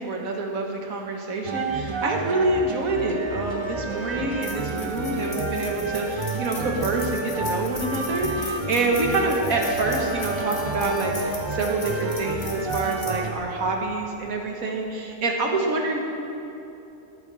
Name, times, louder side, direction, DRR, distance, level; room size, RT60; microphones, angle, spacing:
voice 1, 0.0-16.0, right 2 dB, 85° right, 1 dB, 1.8 m, -27 dB
sound 1, 1.4-13.3, right 2 dB, 40° right, 0.4 m, -30 dB
sound 2, 3.9-14.3, left 3 dB, 80° left, 2.2 m, -40 dB
14.0 x 10.5 x 4.1 m, 2.9 s
omnidirectional pair, 1.4 m